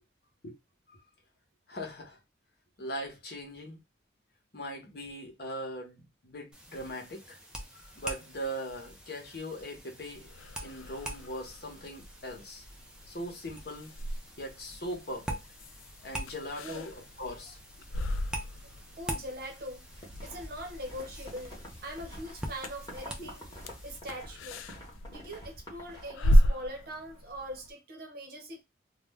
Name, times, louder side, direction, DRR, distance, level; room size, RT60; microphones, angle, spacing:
voice 1, 1.7-2.2 2.8-3.8 4.5-7.4 7.7-10.3 10.6-12.6 13.1-13.9 14.4-15.4 16.0-16.9 17.2-17.6 23.2-23.4, equal, 50° left, 0.9 m, -40 dB
sound 1, 6.5-24.0, right 1 dB, 5° right, 0.4 m, -45 dB
sound 2, 10.1-27.7, equal, 85° left, 0.4 m, -34 dB
voice 2, 18.6-19.8 20.2-23.4 23.8-24.6 25.1-28.6, equal, 50° right, 0.7 m, -42 dB
sound 3, 19.9-26.1, equal, 20° left, 0.9 m, -47 dB
2.4 x 2.1 x 3.4 m
head